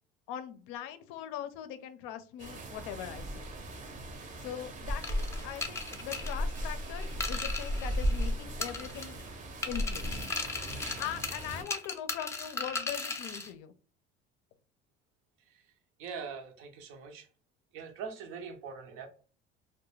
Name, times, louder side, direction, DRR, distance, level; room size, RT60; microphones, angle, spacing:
voice 1, 0.3-3.4 4.4-9.2 9.6-10.2 11.0-13.7, left 10 dB, 80° left, 11 dB, 0.4 m, -41 dB
sound 1, 2.4-11.6, equal, 40° right, 0.6 m, -36 dB
sound 2, 5.0-8.3 8.6-9.3 9.6-13.5, left 3 dB, 15° left, 0.4 m, -37 dB
voice 2, 16.0-17.3 17.7-19.1, right 6 dB, 80° right, 5 dB, 0.6 m, -42 dB
2.3 x 2.1 x 3.0 m, 0.41 s
cardioid pair, 120°, 21 cm